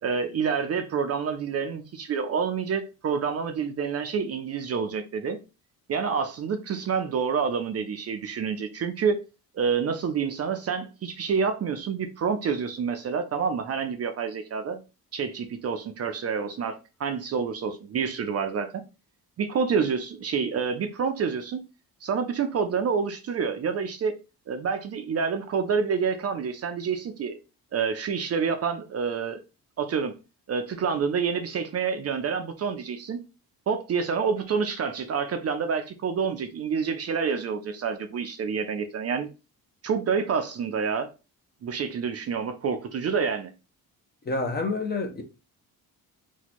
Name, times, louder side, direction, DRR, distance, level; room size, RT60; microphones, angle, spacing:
voice 1, 0.0-5.4 5.9-9.2 9.5-14.8 15.1-18.8 19.4-21.6 22.0-24.1 24.5-27.4 27.7-29.4 29.8-30.1 30.5-33.2 33.7-39.3 39.8-41.1 41.6-43.5, right 6 dB, 40° right, 0.5 m, -28 dB
voice 2, 44.3-45.2, left 3 dB, 25° left, 0.6 m, -28 dB
2.9 x 2.2 x 4.1 m
cardioid pair, 120°, 37 cm